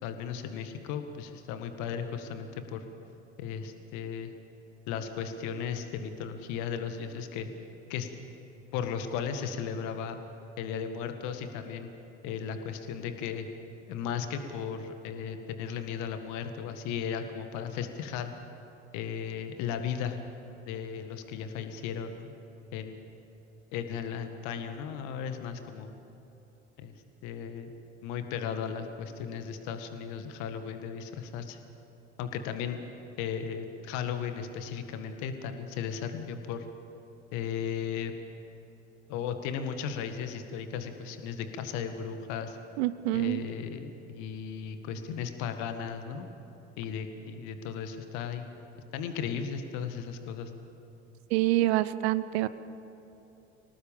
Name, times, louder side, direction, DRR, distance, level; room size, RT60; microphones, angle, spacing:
voice 1, 0.0-2.8 3.4-4.3 4.9-7.5 7.9-8.1 8.7-10.2 10.6-11.9 12.2-13.5 13.9-18.3 18.9-20.2 20.7-22.3 22.7-23.0 23.7-25.9 26.8-26.9 27.2-27.7 28.0-31.6 32.2-32.8 33.2-36.7 37.3-38.1 39.1-42.6 43.1-46.3 46.8-48.6 48.9-50.5, left 7 dB, 55° left, 7 dB, 1.9 m, -36 dB
voice 2, 42.8-43.4 51.3-52.5, right 16 dB, 60° right, 15 dB, 0.9 m, -26 dB
26.0 x 18.5 x 7.4 m, 3.0 s
figure-of-eight pair, 70°, 34 cm